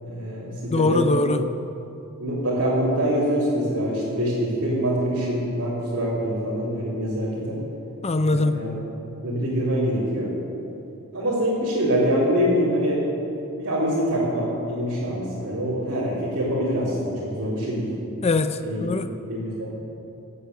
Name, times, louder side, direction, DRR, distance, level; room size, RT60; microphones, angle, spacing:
voice 1, 0.0-1.1 2.2-7.6 8.2-8.7 9.2-10.3 11.1-13.0 13.6-17.9 18.6-18.8 19.3-19.7, equal, 55° right, -10 dB, 3.9 m, -24 dB
voice 2, 0.7-1.4 8.0-8.6 18.2-19.1, left 2 dB, 30° left, 10 dB, 0.5 m, -22 dB
16.0 x 8.6 x 8.3 m, 2.7 s
head